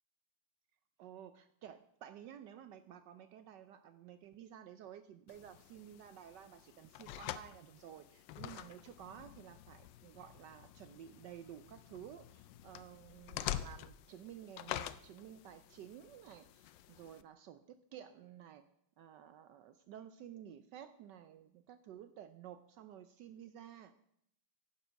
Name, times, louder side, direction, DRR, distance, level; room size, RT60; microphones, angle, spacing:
voice 1, 1.0-18.6 19.0-23.9, right 10 dB, 70° right, 11 dB, 1.1 m, -53 dB
sound 1, 5.3-17.2, left 12 dB, 75° left, 1.2 m, -47 dB
10.5 x 7.5 x 6.3 m, 0.72 s
omnidirectional pair, 2.2 m